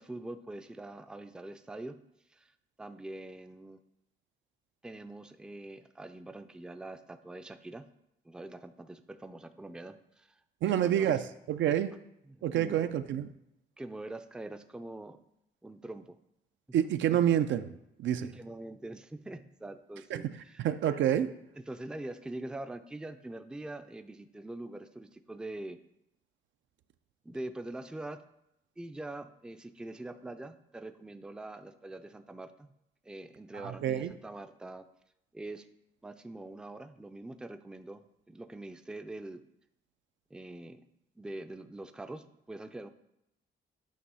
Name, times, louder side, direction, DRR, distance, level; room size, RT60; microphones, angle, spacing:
voice 1, 0.0-2.0 2.3-2.5 2.8-3.8 4.8-7.9 8.2-11.1 11.7-11.8 12.3-12.9 13.8-15.2 15.6-16.2 18.2-20.6 21.2-25.8 27.2-28.2 28.8-32.7 33.0-34.9 35.3-35.7 36.0-39.4 40.3-40.9 41.2-42.9, right 2 dB, 5° right, 9 dB, 0.4 m, -44 dB
voice 2, 10.6-11.2 11.5-11.9 12.4-13.3 16.7-17.7 18.0-18.3 20.1-21.3 33.6-34.1, right 10 dB, 70° right, 10 dB, 0.5 m, -28 dB
8.7 x 3.0 x 5.5 m, 0.82 s
cardioid pair, 90°, 20 cm